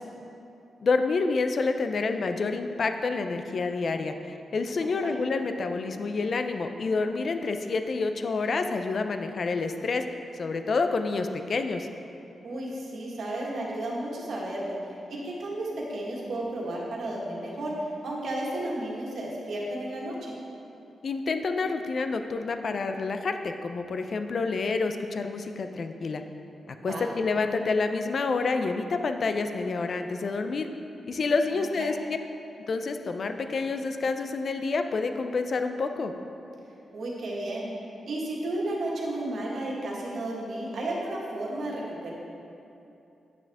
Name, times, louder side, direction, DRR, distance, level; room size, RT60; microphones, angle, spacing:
voice 1, 0.8-10.0 10.4-11.9 21.0-26.2 26.7-30.7 31.1-32.2 32.7-36.1, left 4 dB, 55° left, 7 dB, 0.5 m, -28 dB
voice 2, 12.4-14.8 15.1-20.3 26.8-27.0 31.5-31.9 36.9-37.6 38.1-42.1, right 1 dB, 70° right, -4 dB, 1.7 m, -33 dB
9.3 x 6.9 x 3.5 m, 2.8 s
cardioid pair, 70°, 0 cm